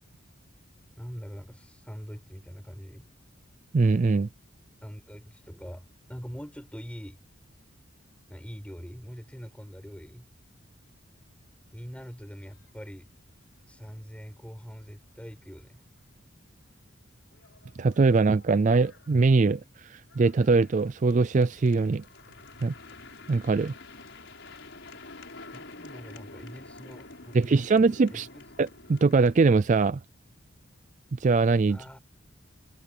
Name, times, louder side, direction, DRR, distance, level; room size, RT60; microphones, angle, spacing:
voice 1, 1.0-3.1 4.8-5.8 6.1-7.2 8.3-10.3 11.7-13.1 13.7-15.8 25.5-27.9 28.1-28.4 31.7-32.0, equal, 5° left, 7.9 m, -43 dB
voice 2, 3.7-4.3 17.8-22.0 22.6-22.7 23.3-23.7 27.3-28.3 28.6-30.0 31.2-31.8, right 4 dB, 40° right, 0.4 m, -22 dB
sound 1, 12.2-12.9 13.1-13.2 13.5-13.7 14.1-14.2 16.0-16.1 16.7-16.8 17.1-29.4, left 3 dB, 65° left, 6.4 m, -49 dB
head